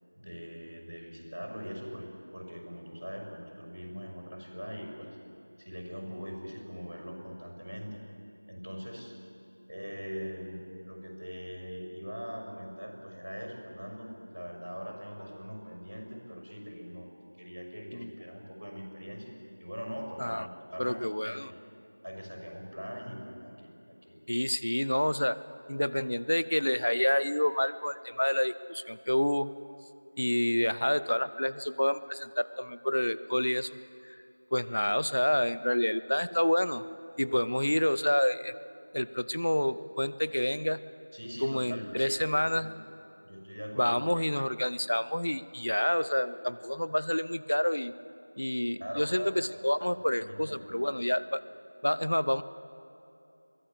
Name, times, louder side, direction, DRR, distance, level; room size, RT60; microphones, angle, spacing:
voice 1, 0.1-5.2 5.6-8.0 8.5-9.2 9.7-17.1 17.4-21.6 22.0-24.2 41.1-42.0 42.5-42.7 43.2-44.0 48.8-49.4 49.9-50.8, equal, 75° right, 2 dB, 6.3 m, -42 dB
voice 2, 20.8-21.5 24.3-25.4 25.7-29.5 30.2-33.8 34.0-34.2 34.5-36.8 37.2-38.5 38.9-40.8 41.4-42.7 43.8-47.9 48.4-51.4 51.8-52.4, left 1 dB, 55° left, 16 dB, 0.6 m, -28 dB
22.5 x 15.0 x 8.8 m, 2.8 s
figure-of-eight pair, 175°, 0 cm